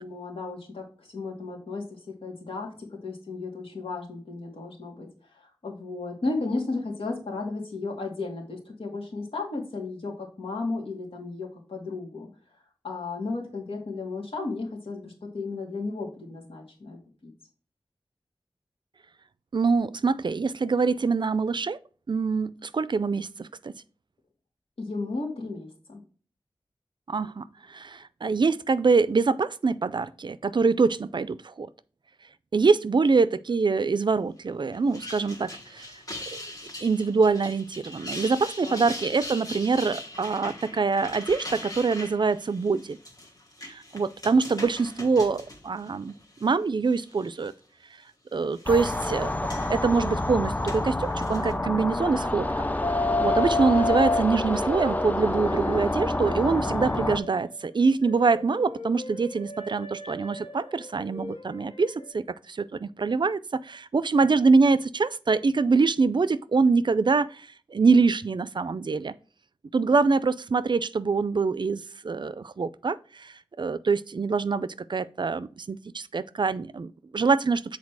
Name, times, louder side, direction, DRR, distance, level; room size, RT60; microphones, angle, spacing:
voice 1, 0.0-5.1 5.6-12.3 12.8-17.3 24.8-26.0 38.6-38.8, left 3 dB, 85° left, 2.5 m, -34 dB
voice 2, 19.5-21.8 22.1-23.7 27.1-31.7 32.5-35.9 36.8-43.0 43.7-46.1 46.4-47.5 48.3-52.5 53.2-69.1 69.7-77.8, right 4 dB, 55° right, 0.4 m, -24 dB
sound 1, 34.7-46.5 46.9-47.5 48.3-51.5, left 1 dB, 40° left, 1.4 m, -41 dB
sound 2, 48.7-57.2, left 1 dB, 15° left, 0.4 m, -28 dB
sound 3, 51.4-51.9 52.4-57.5 58.0-61.6 61.9-62.1, left 3 dB, 70° left, 0.9 m, -32 dB
7.4 x 4.1 x 4.6 m
wide cardioid pair, 80°, 9 cm